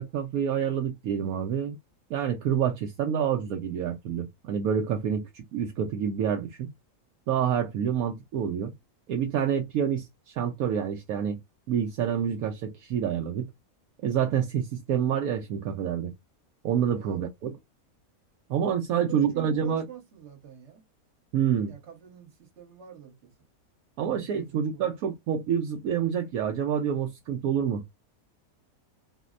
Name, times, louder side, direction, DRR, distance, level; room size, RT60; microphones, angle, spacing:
voice 1, 0.0-1.8 2.1-6.7 7.3-8.7 9.1-11.4 11.7-13.5 14.0-16.1 16.6-17.5 18.5-19.8 21.3-21.7 24.0-27.8, right 8 dB, 75° right, 1.0 m, -27 dB
voice 2, 16.9-17.2 18.9-20.8 21.7-23.3 24.2-24.9, right 9 dB, 50° right, 1.4 m, -47 dB
4.2 x 2.0 x 2.4 m
omnidirectional pair, 1.5 m